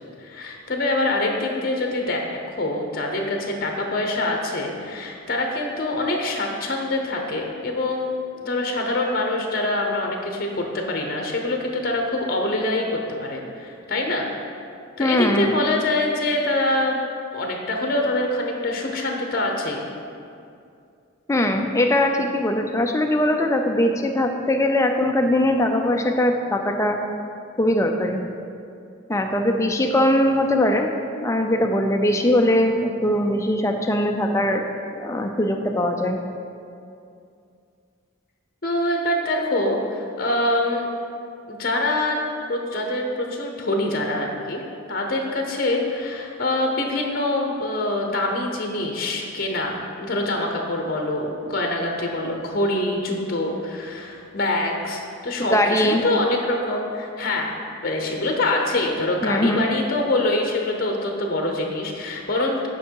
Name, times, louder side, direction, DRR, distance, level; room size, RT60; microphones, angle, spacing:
voice 1, 0.2-8.1 8.4-12.9 13.2-14.3 15.0-17.0 17.3-19.8 38.6-40.9 41.5-42.2 42.5-44.6 44.9-57.5 57.8-62.6, left 2 dB, 45° left, 2 dB, 0.9 m, -25 dB
voice 2, 15.0-15.5 21.3-27.0 27.6-28.2 29.1-30.9 31.2-34.6 35.0-36.2 55.4-56.0 59.2-59.6, left 1 dB, 15° left, 3 dB, 0.5 m, -21 dB
9.0 x 5.5 x 4.7 m, 2.5 s
head